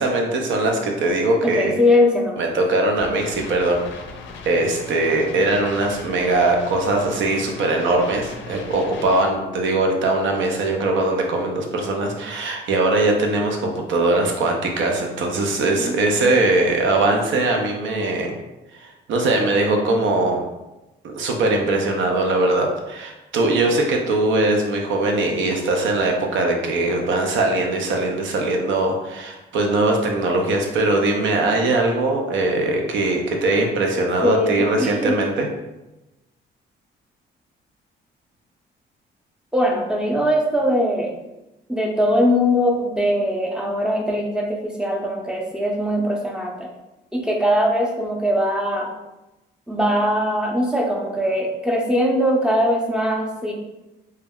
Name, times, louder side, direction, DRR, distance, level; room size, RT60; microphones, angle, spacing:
voice 1, 0.0-1.8 2.4-3.8 4.5-18.4 18.7-20.4 21.1-35.5, right 2 dB, 75° right, 2 dB, 0.5 m, -21 dB
voice 2, 1.4-2.4 15.8-15.9 34.2-35.1 39.5-41.1 41.7-46.7 47.1-48.9 49.7-53.5, equal, 5° right, -1 dB, 0.5 m, -21 dB
sound 1, 2.9-9.2, left 4 dB, 70° left, 0.4 m, -38 dB
2.2 x 2.0 x 3.5 m, 0.99 s
cardioid pair, 90°, 20 cm